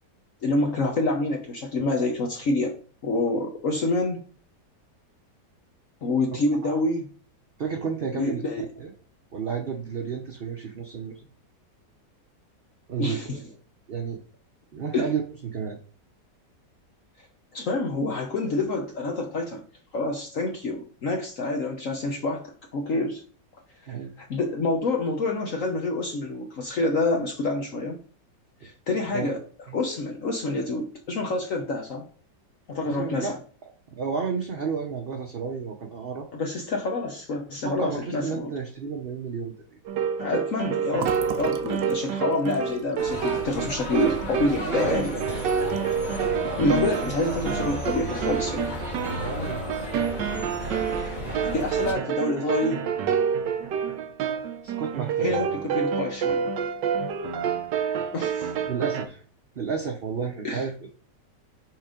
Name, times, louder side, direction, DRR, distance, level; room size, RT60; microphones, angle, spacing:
voice 1, 0.4-2.8 3.0-4.2 6.0-7.1 8.1-8.7 13.0-13.4 14.9-15.1 17.5-19.6 19.9-23.2 24.2-28.0 28.6-29.4 29.7-32.0 32.7-33.4 36.3-38.5 40.2-45.1 46.6-48.7 50.9-51.1 51.5-52.8 55.2-56.5 58.1-58.5 60.4-60.7, left 2 dB, 55° left, 2 dB, 1.2 m, -27 dB
voice 2, 7.6-8.4 8.8-8.9 9.3-11.3 12.9-13.4 13.9-14.2 14.7-15.8 23.9-24.1 29.1-29.3 29.7-29.8 32.8-33.3 33.9-36.3 37.6-39.5 44.6-45.6 49.1-49.8 54.6-55.5 58.7-59.2 59.5-60.9, right 6 dB, 45° right, 1 dB, 0.9 m, -32 dB
sound 1, 39.8-59.1, right 7 dB, 85° right, 1.5 m, -28 dB
Fill (with liquid), 41.0-44.6 45.0-45.1 45.4-46.0, right 8 dB, 65° right, 1.0 m, -39 dB
sound 2, 43.0-51.9, left 1 dB, 30° left, 1.6 m, -34 dB
6.2 x 3.8 x 5.0 m, 0.42 s
omnidirectional pair, 1.8 m